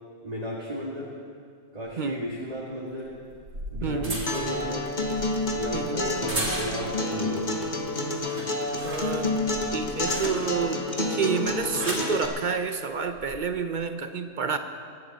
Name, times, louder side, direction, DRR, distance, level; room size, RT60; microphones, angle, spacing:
voice 1, 0.2-1.1 1.7-3.2 3.7-4.9 5.6-7.6, equal, 25° right, -6 dB, 2.0 m, -34 dB
sound 1, 1.8-1.9 3.1-7.1 7.5-7.8 8.1-10.7 11.5-12.1 13.0-13.4, right 1 dB, 80° right, 3.1 m, -36 dB
voice 2, 3.8-4.2 5.7-6.0 8.8-9.3 9.7-14.6, right 5 dB, 45° right, 8 dB, 0.7 m, -29 dB
Acoustic guitar, 4.3-12.3, left 2 dB, 35° left, 1.3 m, -29 dB
24.0 x 11.0 x 4.1 m, 2.1 s
omnidirectional pair, 1.5 m